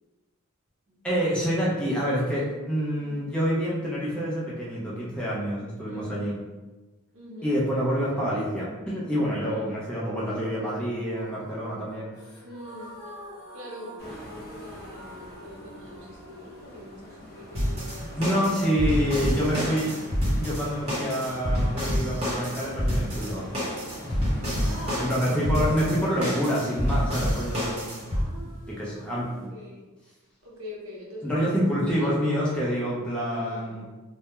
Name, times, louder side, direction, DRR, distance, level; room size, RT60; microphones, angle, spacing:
voice 1, 1.0-6.3 7.4-12.1 18.2-20.0 20.4-23.4 24.0-24.2 25.0-27.9 28.4-29.5 31.2-33.8, equal, 5° left, -7 dB, 0.5 m, -27 dB
voice 2, 2.9-3.4 5.8-6.3 7.1-7.6 9.3-9.9 12.4-13.1 13.5-20.2 24.6-25.7 28.1-29.9 30.4-32.5 33.3-33.8, left 1 dB, 65° right, -4 dB, 0.7 m, -44 dB
sound 1, 11.1-19.1, right 1 dB, 80° left, 0.6 m, -46 dB
sound 2, 14.0-29.5, equal, 45° left, 0.7 m, -46 dB
sound 3, 17.5-28.2, equal, 30° right, 0.9 m, -28 dB
2.2 x 2.1 x 2.9 m, 1.2 s
head